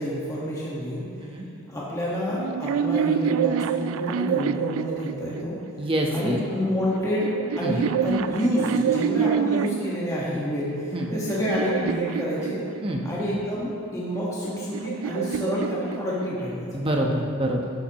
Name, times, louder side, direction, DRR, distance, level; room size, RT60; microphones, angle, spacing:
voice 1, 0.0-1.1 1.7-5.6 6.1-12.6 13.0-16.8, equal, 15° left, -7 dB, 1.5 m, -28 dB
sound 1, 2.3-5.7 6.6-10.0 10.7-13.1 14.1-16.6, right 8 dB, 75° right, 0.3 m, -27 dB
voice 2, 5.8-6.4 7.6-7.8 10.9-11.1 12.8-13.0 16.7-17.7, right 1 dB, 25° right, 0 dB, 1.0 m, -26 dB
11.5 x 11.0 x 3.0 m, 2.6 s
head